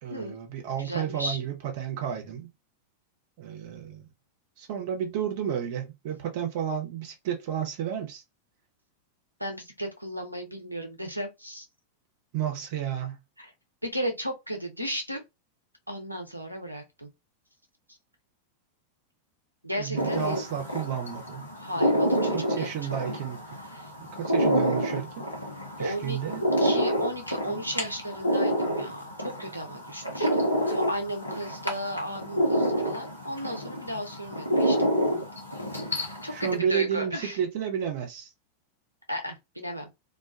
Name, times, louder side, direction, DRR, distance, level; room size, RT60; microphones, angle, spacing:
voice 1, 0.0-2.5 3.4-4.1 4.6-8.2 12.3-13.2 19.8-21.5 22.3-23.4 24.1-25.2 25.8-26.4 36.3-38.3, right 8 dB, 50° right, 0.8 m, -31 dB
voice 2, 0.8-1.4 9.4-11.7 13.4-13.5 13.8-15.2 15.9-17.1 19.6-20.4 21.6-23.0 23.7-23.9 25.8-26.2 26.6-35.2 36.2-37.4 39.1-39.9, equal, 90° right, 0.6 m, -35 dB
sound 1, 20.0-36.6, equal, 80° left, 0.8 m, -28 dB
2.4 x 2.2 x 2.3 m
figure-of-eight pair, 90°, 0 cm